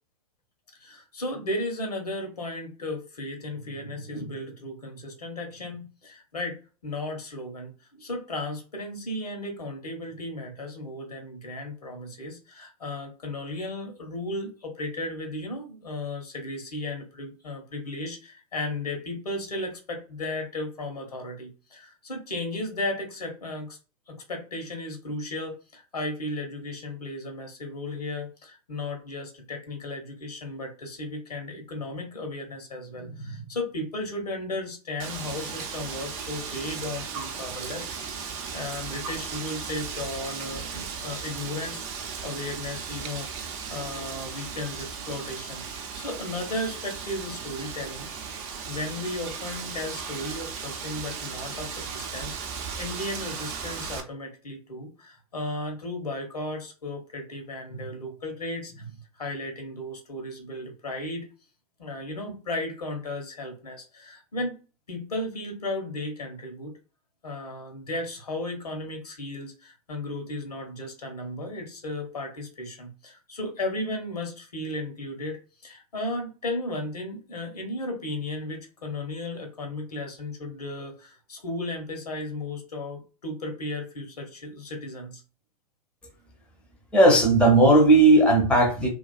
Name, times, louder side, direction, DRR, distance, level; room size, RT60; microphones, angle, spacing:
voice 1, 0.8-23.8 24.1-38.1 38.5-43.3 43.7-48.1 48.7-52.3 52.7-61.2 61.8-64.6 64.9-66.7 67.2-85.2, left 1 dB, 85° left, 4 dB, 0.8 m, -35 dB
Wind, 35.0-54.0, right 6 dB, 40° right, 0.6 m, -36 dB
voice 2, 86.9-88.9, right 2 dB, 5° left, 2 dB, 0.6 m, -16 dB
2.4 x 2.3 x 2.3 m, 0.35 s
figure-of-eight pair, 100°, 19 cm